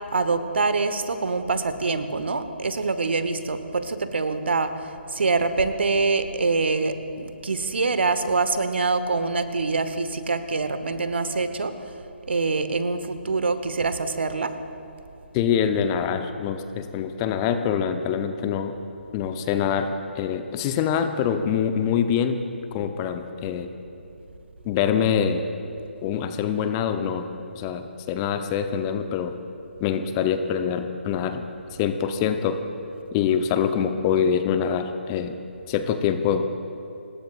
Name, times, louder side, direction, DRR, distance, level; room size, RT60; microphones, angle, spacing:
voice 1, 0.1-4.7 5.1-11.7 12.3-14.6, right 3 dB, 65° right, 10 dB, 1.1 m, -25 dB
voice 2, 15.3-18.8 19.1-22.4 22.7-23.7 24.6-25.4 26.0-27.3 27.5-29.3 29.8-31.4 31.8-32.6 33.1-35.4 35.7-36.5, left 8 dB, 20° left, 8 dB, 0.7 m, -25 dB
25.5 x 20.0 x 2.5 m, 2.7 s
figure-of-eight pair, 140°, 7 cm